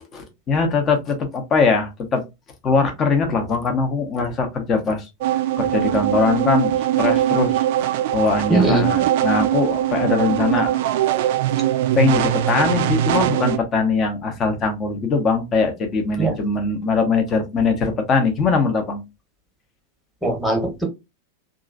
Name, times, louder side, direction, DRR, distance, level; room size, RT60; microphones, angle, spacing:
voice 1, 0.1-2.2 2.6-5.1 5.6-7.6 8.1-10.8 11.9-19.0, left 4 dB, 25° left, 0.8 m, -21 dB
sound 1, 5.2-13.6, right 12 dB, 50° right, 0.3 m, -21 dB
voice 2, 8.5-8.9 16.2-16.3 20.2-20.8, right 2 dB, ahead, 1.2 m, -19 dB
2.9 x 2.5 x 2.5 m
figure-of-eight pair, 90°, 0 cm